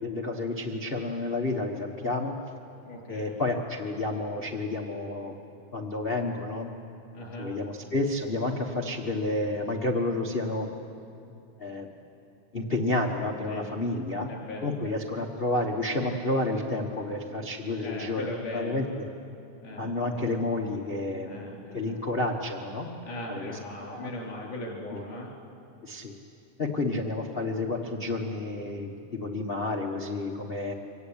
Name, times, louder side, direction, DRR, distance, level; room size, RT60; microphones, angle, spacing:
voice 1, 0.0-2.3 3.1-5.3 5.7-6.7 7.4-10.7 11.6-11.9 12.5-14.3 14.6-18.2 18.5-18.8 19.8-21.5 21.7-22.9 23.3-23.5 23.8-24.1 24.9-25.0 25.8-26.1 26.6-30.7, left 2 dB, 60° left, 0 dB, 0.5 m, -30 dB
voice 2, 2.9-3.3 7.1-7.5 13.5-13.6 14.2-15.0 17.8-18.9 19.6-20.3 21.2-22.0 23.0-25.3, left 1 dB, 85° left, -2 dB, 5.6 m, -39 dB
24.5 x 18.5 x 8.8 m, 2.7 s
omnidirectional pair, 3.4 m